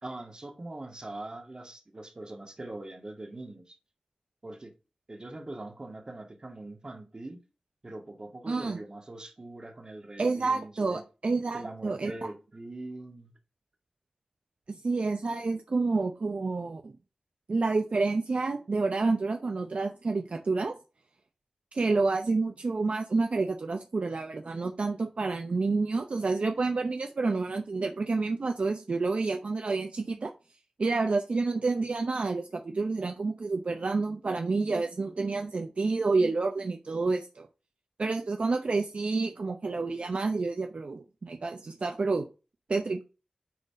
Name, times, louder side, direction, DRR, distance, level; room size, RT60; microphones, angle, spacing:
voice 1, 0.0-3.8 4.4-4.7 5.1-7.5 7.8-11.0 11.5-13.3, right 2 dB, 40° right, 1.9 m, -42 dB
voice 2, 8.5-8.8 10.2-12.1 14.7-16.9 17.5-20.8 21.7-30.3 30.8-37.5 38.0-42.3 42.7-43.0, right 3 dB, 65° right, 0.7 m, -29 dB
9.3 x 4.0 x 3.7 m
wide cardioid pair, 65°, 2 cm